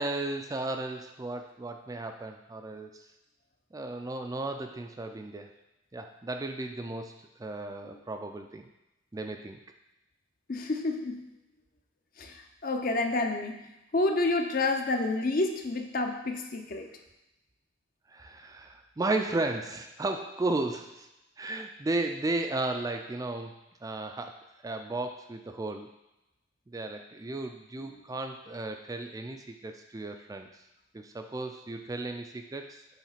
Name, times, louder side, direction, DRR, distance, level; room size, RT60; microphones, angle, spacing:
voice 1, 0.0-3.1 3.7-5.5 5.9-8.7 9.1-9.6 18.1-21.1 21.4-24.4 24.6-25.9 26.7-30.6 30.9-32.8, right 2 dB, 20° right, 5 dB, 0.3 m, -34 dB
voice 2, 10.5-11.3 12.2-13.6 13.9-16.9 27.8-28.0, left 2 dB, 45° left, 4 dB, 0.7 m, -29 dB
7.2 x 3.2 x 5.7 m, 0.95 s
head